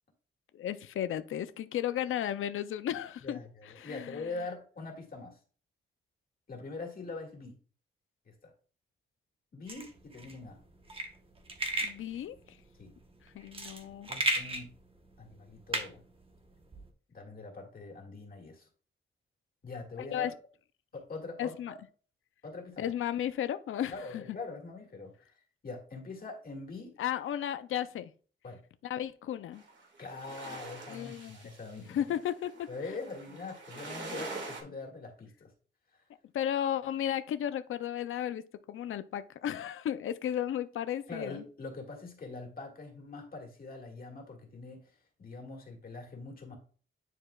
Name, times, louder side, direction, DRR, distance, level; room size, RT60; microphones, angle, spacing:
voice 1, 0.5-3.4 3.8-4.2 11.8-12.6 13.3-14.1 20.1-20.3 21.4-21.7 22.8-24.2 27.0-28.1 28.8-29.6 30.9-31.4 31.9-32.7 36.3-38.4 38.7-41.4, left 10 dB, 75° left, 0.5 m, -34 dB
voice 2, 3.2-5.4 6.5-7.6 8.3-8.5 9.5-10.6 12.8-12.9 14.1-14.7 15.2-16.0 17.1-18.7 19.6-20.3 20.9-21.8 22.4-22.9 23.9-25.3 25.6-27.0 28.4-28.6 30.0-32.0 32.7-35.5 35.9-36.1 41.1-44.9 45.2-46.6, left 3 dB, 45° left, 1.9 m, -43 dB
sound 1, 9.7-16.9, right 1 dB, 25° right, 1.1 m, -36 dB
sound 2, 29.5-34.6, right 3 dB, 60° right, 1.9 m, -44 dB
9.8 x 4.6 x 2.3 m
wide cardioid pair, 120°, 21 cm